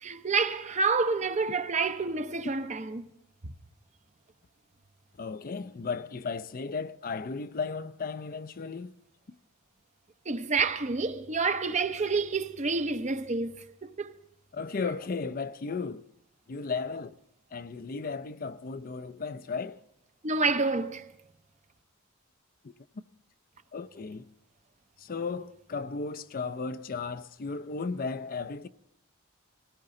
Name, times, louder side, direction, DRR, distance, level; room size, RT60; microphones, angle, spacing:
voice 1, 0.0-3.1 10.3-14.1 20.2-21.1, right 4 dB, 35° right, 0.7 m, -28 dB
voice 2, 5.2-8.9 14.5-16.0 16.5-17.1 17.5-19.8 22.6-22.7 23.7-24.2 25.0-28.7, left 4 dB, 45° left, 0.5 m, -35 dB
19.5 x 17.5 x 3.8 m
head